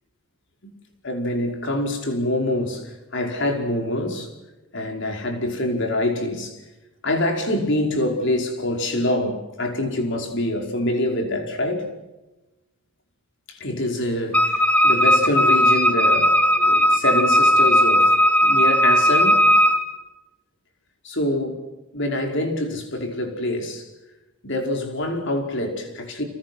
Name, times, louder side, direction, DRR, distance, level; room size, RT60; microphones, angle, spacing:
voice 1, 1.0-4.3 4.7-6.6 7.0-11.9 13.5-18.1 18.4-19.5 21.0-21.5 21.9-23.9 24.4-26.2, left 1 dB, 55° left, 5.1 m, -25 dB
Wind instrument woodwind instrument, 14.3-19.8, equal, 5° left, 2.5 m, -17 dB
30.0 x 27.5 x 6.2 m
head